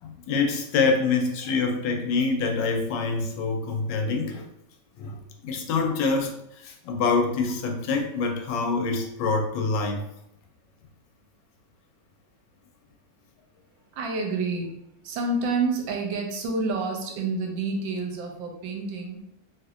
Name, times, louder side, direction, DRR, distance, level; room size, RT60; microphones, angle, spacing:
voice 1, 0.0-4.4 5.0-10.0, left 4 dB, 75° left, 3 dB, 1.2 m, -26 dB
voice 2, 13.9-14.7 15.0-19.2, right 3 dB, 85° right, 2 dB, 1.4 m, -28 dB
3.4 x 2.9 x 2.4 m, 0.78 s
omnidirectional pair, 2.0 m